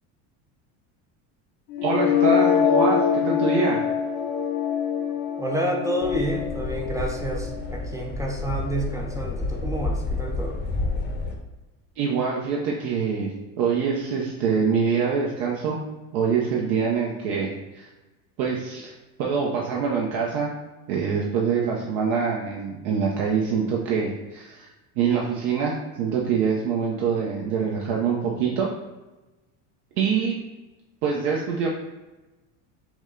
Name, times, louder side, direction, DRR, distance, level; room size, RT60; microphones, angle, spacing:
sound 1, 1.7-7.7, left 8 dB, 80° left, 1.0 m, -24 dB
voice 1, 1.8-3.8 12.0-13.3 13.6-15.8 16.1-17.9 18.4-18.9 19.2-20.5 20.9-24.7 25.0-28.7 30.0-30.4 31.0-31.7, right 6 dB, 70° right, -2 dB, 0.8 m, -25 dB
voice 2, 5.4-10.6, right 1 dB, 10° right, 1 dB, 0.4 m, -29 dB
sound 2, 6.0-11.3, left 3 dB, 25° left, 0.7 m, -30 dB
6.0 x 2.2 x 3.7 m, 1.1 s
cardioid pair, 130°, 38 cm